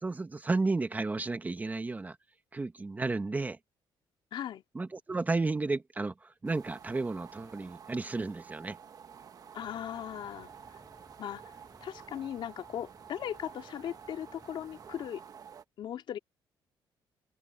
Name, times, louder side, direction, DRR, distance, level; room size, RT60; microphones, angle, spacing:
voice 1, 0.0-2.2 2.5-3.6 4.7-8.8, right 3 dB, 20° right, 1.2 m, -32 dB
voice 2, 4.3-4.6 9.5-10.5 11.2-11.4 11.8-15.2 15.8-16.2, left 10 dB, 65° left, 2.6 m, -38 dB
sound 1, 6.4-15.6, right 7 dB, 45° right, 1.3 m, -51 dB
sound 2, 9.6-15.1, left 1 dB, 10° left, 7.2 m, -62 dB
cardioid pair, 125°, 9 cm